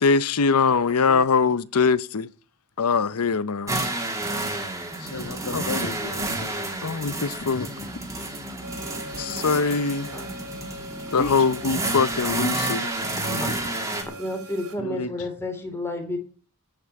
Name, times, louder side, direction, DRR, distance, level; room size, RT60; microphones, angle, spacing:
voice 1, 0.0-2.3 2.8-3.8 5.5-5.6 6.8-7.7 9.2-10.1 11.1-12.9, left 5 dB, 85° left, 0.7 m, -22 dB
sound 1, 3.7-14.0, right 2 dB, 15° right, 2.6 m, -30 dB
voice 2, 5.1-6.7 7.4-8.0 11.1-11.5 13.3-13.6 14.8-15.3, left 2 dB, 70° left, 1.7 m, -34 dB
sound 2, 8.6-14.7, right 1 dB, 85° right, 3.5 m, -41 dB
voice 3, 13.0-13.5 14.2-16.2, left 1 dB, 10° left, 3.3 m, -31 dB
14.5 x 6.0 x 9.1 m
head